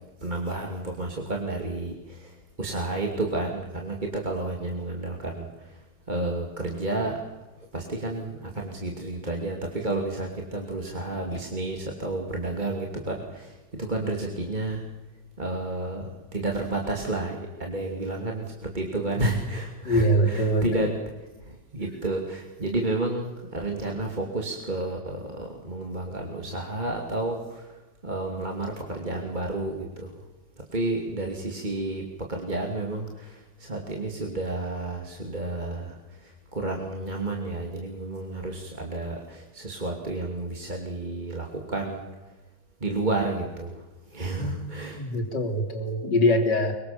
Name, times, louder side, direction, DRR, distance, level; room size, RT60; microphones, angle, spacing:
voice 1, 0.2-7.2 7.7-14.9 15.4-20.9 21.4-30.2 30.6-42.1 42.8-45.0, right 2 dB, 25° right, 1 dB, 2.8 m, -31 dB
voice 2, 19.8-20.9 44.4-46.7, equal, 75° left, 5 dB, 3.8 m, -24 dB
24.0 x 23.5 x 7.0 m, 1.1 s
omnidirectional pair, 1.9 m